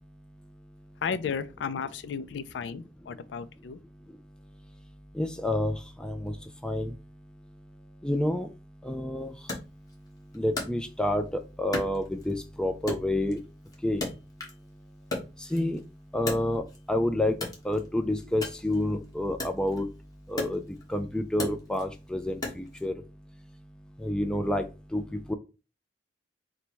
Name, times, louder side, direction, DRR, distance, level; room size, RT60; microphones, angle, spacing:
voice 1, 1.0-3.8, left 6 dB, 80° left, 0.4 m, -34 dB
voice 2, 5.2-5.8 6.0-6.3 6.6-6.9 8.0-8.5 8.8-9.3 10.3-11.3 11.6-13.4 13.8-14.0 15.5-15.8 16.1-16.6 16.9-17.4 17.7-19.9 20.3-20.6 20.9-22.9 24.0-24.7 24.9-25.0 25.3-25.4, left 1 dB, 5° left, 0.3 m, -28 dB
Wood, 9.5-11.3 11.7-12.5 12.9-14.7 15.0-16.9 17.3-22.9, left 2 dB, 20° left, 1.1 m, -37 dB
4.0 x 2.2 x 4.5 m
head